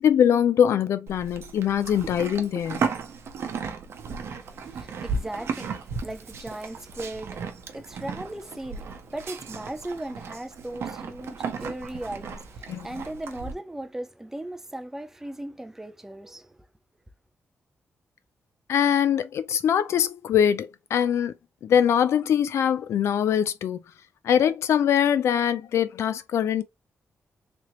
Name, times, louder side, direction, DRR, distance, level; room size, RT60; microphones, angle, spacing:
voice 1, 0.0-2.9 12.7-12.9 18.7-21.3 21.6-23.8 24.2-26.6, left 9 dB, 80° left, 0.5 m, -22 dB
Livestock farm animals working animals, 1.1-13.5, right 5 dB, 70° right, 0.7 m, -35 dB
voice 2, 4.3-16.6, right 1 dB, 10° right, 0.5 m, -38 dB
3.4 x 2.8 x 3.0 m
wide cardioid pair, 125°, 5 cm